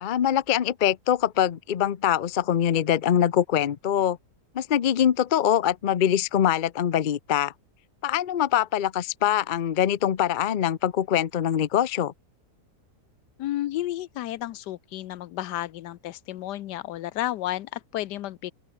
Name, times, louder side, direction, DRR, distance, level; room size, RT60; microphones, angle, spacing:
voice 1, 0.0-4.2 4.5-7.5 8.0-12.1, left 10 dB, 55° left, 0.5 m, -23 dB
voice 2, 13.4-18.5, left 14 dB, 85° left, 1.3 m, -32 dB
open air
omnidirectional pair, 1.8 m